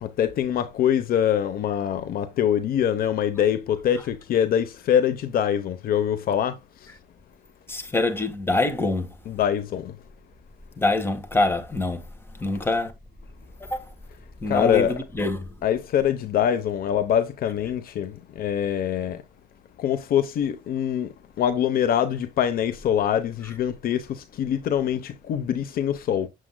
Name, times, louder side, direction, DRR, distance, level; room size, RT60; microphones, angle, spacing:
voice 1, 0.0-6.6 9.3-9.9 14.5-15.0 15.6-19.2 19.8-21.1 21.4-26.3, left 9 dB, 60° left, 0.9 m, -24 dB
voice 2, 7.7-9.1 10.8-12.0 12.4-12.9 13.6-13.9 14.4-15.5, left 2 dB, 15° left, 1.6 m, -25 dB
7.6 x 7.4 x 2.2 m
cardioid pair, 110°, 17 cm